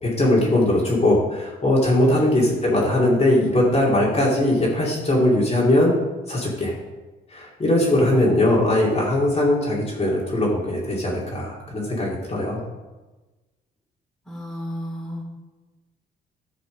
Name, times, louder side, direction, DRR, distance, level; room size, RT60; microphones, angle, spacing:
voice 1, 0.0-6.0 6.3-6.8 7.3-12.6, left 1 dB, 30° left, -4 dB, 2.8 m, -20 dB
voice 2, 14.2-15.2, equal, ahead, -2 dB, 3.2 m, -34 dB
11.5 x 5.9 x 5.2 m, 1.2 s
cardioid pair, 90°, 20 cm